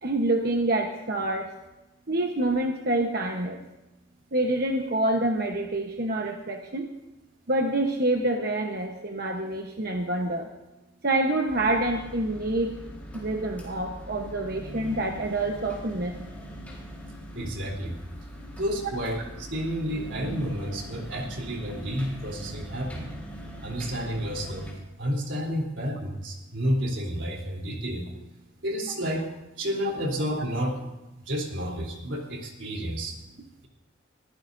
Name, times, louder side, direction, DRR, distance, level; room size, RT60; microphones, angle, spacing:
voice 1, 0.0-1.5 2.1-3.6 4.3-6.9 7.5-10.5 11.0-12.7 13.1-16.1, right 2 dB, 55° right, 2 dB, 1.1 m, -27 dB
sound 1, 11.5-24.7, equal, 10° left, 4.0 m, -41 dB
voice 2, 17.3-18.0 18.5-23.1 23.6-24.7 25.0-28.1 28.6-29.3 29.6-30.8 31.2-33.1, equal, 70° right, 0 dB, 3.5 m, -30 dB
23.0 x 15.5 x 2.7 m, 1.0 s
head